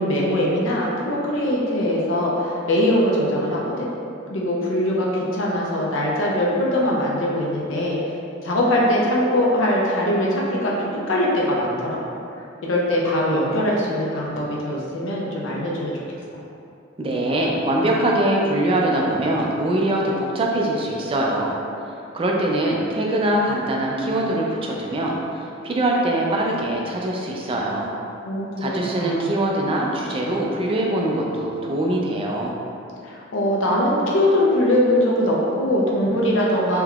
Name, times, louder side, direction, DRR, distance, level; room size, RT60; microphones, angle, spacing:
voice 1, 0.0-3.9 4.3-8.2 8.4-12.0 12.6-16.0 28.2-29.3 33.0-36.8, left 1 dB, 80° left, -4 dB, 0.6 m, -22 dB
voice 2, 17.0-21.5 22.1-27.9 28.6-32.6, right 1 dB, 25° right, -2 dB, 0.3 m, -23 dB
3.5 x 2.8 x 2.3 m, 2.6 s
head